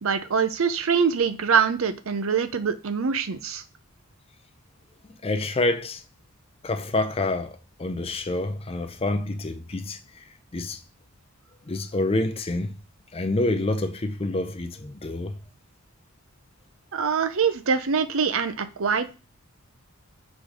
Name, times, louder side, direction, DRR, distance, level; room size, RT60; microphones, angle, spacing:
voice 1, 0.0-3.6 16.9-19.2, right 6 dB, 60° right, 0.6 m, -24 dB
voice 2, 5.2-6.0 6.6-10.0 10.5-10.8 11.7-12.8 13.1-15.4, left 2 dB, 25° left, 0.5 m, -27 dB
4.8 x 3.9 x 5.0 m
head